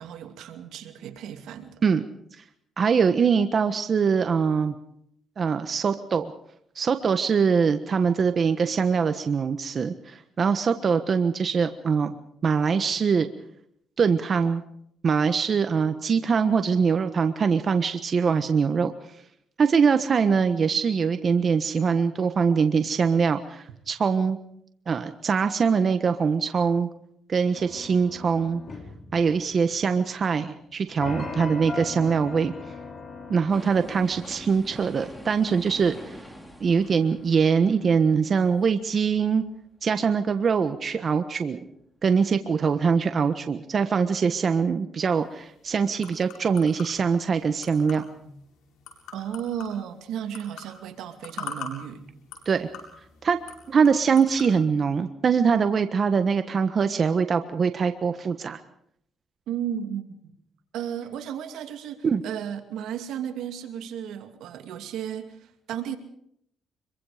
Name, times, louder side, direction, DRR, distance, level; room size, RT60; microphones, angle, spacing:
voice 1, 0.0-1.8 49.1-52.0 59.5-60.4 60.7-66.0, right 9 dB, 85° right, 6 dB, 2.5 m, -34 dB
voice 2, 2.8-4.7 5.4-6.3 6.7-12.2 12.4-13.3 14.0-14.6 15.0-18.9 19.6-24.4 24.9-26.9 27.3-28.6 29.1-32.5 33.3-36.2 36.6-39.4 39.8-41.6 42.0-48.1 52.4-52.7 53.2-53.4 53.7-58.6 62.0-62.2, right 6 dB, 45° right, 8 dB, 1.3 m, -23 dB
sound 1, 27.6-30.0 31.0-34.6, left 4 dB, 45° left, 4.0 m, -39 dB
sound 2, 33.5-39.5 39.9-40.0, equal, 5° left, 4.3 m, -46 dB
sound 3, 45.1-54.5, left 5 dB, 85° left, 7.4 m, -44 dB
25.0 x 23.5 x 5.1 m, 0.71 s
cardioid pair, 90°, 0 cm